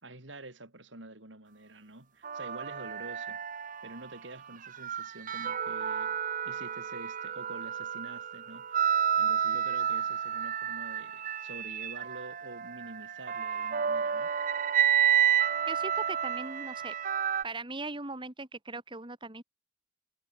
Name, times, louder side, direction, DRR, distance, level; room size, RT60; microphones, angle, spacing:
voice 1, 0.0-3.4 3.8-6.2 6.4-14.3, right 2 dB, 75° right, 4.4 m, -47 dB
sound 1, 2.2-4.1 4.6-17.4, right 8 dB, 45° right, 0.7 m, -30 dB
voice 2, 15.7-16.9 17.4-19.4, right 3 dB, 25° right, 2.7 m, -39 dB
head